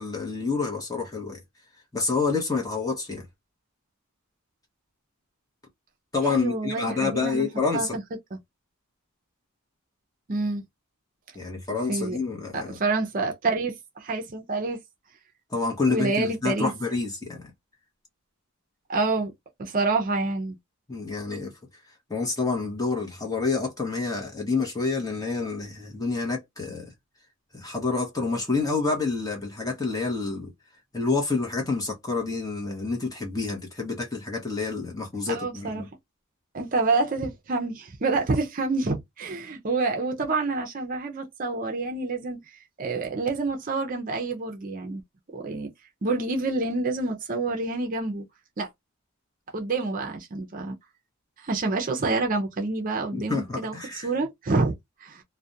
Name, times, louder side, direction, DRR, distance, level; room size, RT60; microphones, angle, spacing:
voice 1, 0.0-1.4 1.9-3.3 6.1-8.0 11.3-12.8 15.5-17.5 20.9-21.5 22.1-26.9 27.5-30.5 30.9-35.9 53.1-54.1, left 4 dB, 15° left, 0.8 m, -28 dB
voice 2, 6.3-8.0 8.3-8.4 10.3-10.6 11.9-12.2 12.5-14.8 15.8-16.7 18.9-19.3 19.6-20.6 35.3-35.8 36.5-45.0 45.3-45.7 46.0-48.2 48.6-48.7 49.5-50.8 51.4-55.2, right 3 dB, 40° right, 0.5 m, -28 dB
2.4 x 2.1 x 2.7 m
head